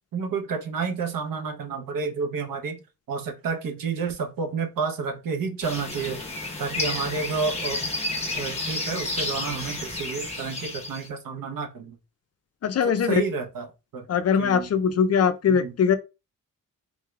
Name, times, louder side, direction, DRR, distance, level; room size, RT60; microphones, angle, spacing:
voice 1, 0.1-2.8 3.1-6.2 6.6-7.8 8.3-12.0 12.8-14.1 14.4-14.7 15.5-15.8, right 5 dB, 80° right, 0.8 m, -30 dB
sound 1, 5.6-11.1, left 2 dB, 20° left, 0.9 m, -31 dB
voice 2, 12.6-13.1 14.1-16.0, left 7 dB, 50° left, 0.4 m, -21 dB
3.7 x 3.1 x 2.3 m
wide cardioid pair, 125°, 33 cm